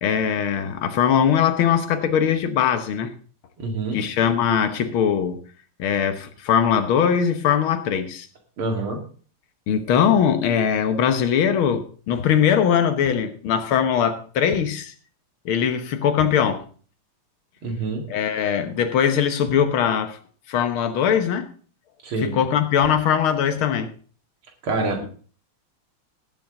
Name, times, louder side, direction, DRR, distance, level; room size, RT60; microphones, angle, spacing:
voice 1, 0.0-3.1 3.9-5.4 5.8-8.3 9.7-14.9 15.5-16.6 18.1-20.2 20.5-21.5 22.2-23.9 25.0-25.1, left 8 dB, 80° left, 8 dB, 2.0 m, -21 dB
voice 2, 3.6-4.0 8.6-9.0 17.6-18.0 22.0-22.3 24.6-25.1, right 3 dB, 80° right, 3 dB, 3.1 m, -26 dB
18.0 x 7.5 x 3.8 m, 0.42 s
omnidirectional pair, 2.3 m